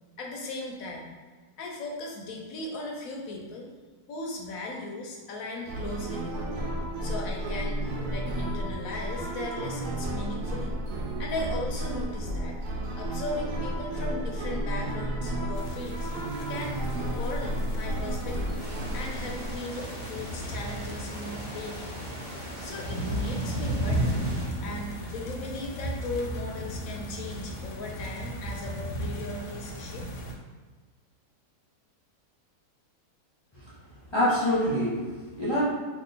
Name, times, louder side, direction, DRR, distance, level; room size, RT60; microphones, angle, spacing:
voice 1, 0.2-1.1 1.6-3.7 4.1-6.5 7.0-10.7 11.2-12.6 12.9-16.8 17.1-18.6 18.9-22.0 22.6-24.3 24.6-30.1, left 2 dB, 70° left, 0 dB, 0.9 m, -37 dB
sound 1, 5.7-19.6, right 1 dB, 75° right, 1.1 m, -32 dB
sound 2, 15.6-30.3, right 1 dB, 85° left, 1.2 m, -35 dB
sound 3, 18.6-24.5, right 1 dB, 50° right, 0.5 m, -41 dB
voice 2, 34.1-35.6, left 1 dB, 45° left, -9 dB, 0.3 m, -26 dB
2.9 x 2.5 x 3.9 m, 1.4 s
omnidirectional pair, 1.7 m